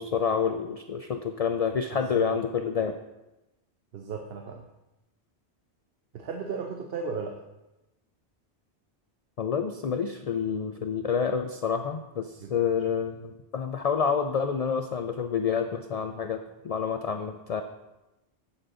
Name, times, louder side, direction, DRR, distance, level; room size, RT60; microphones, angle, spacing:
voice 1, 0.0-3.0 9.4-16.4 16.6-17.6, left 6 dB, 60° left, 7 dB, 0.4 m, -28 dB
voice 2, 1.9-2.4 3.9-4.6 6.1-7.4 12.4-12.5, right 5 dB, 65° right, 4 dB, 0.9 m, -35 dB
8.0 x 7.1 x 3.8 m, 0.99 s
omnidirectional pair, 1.1 m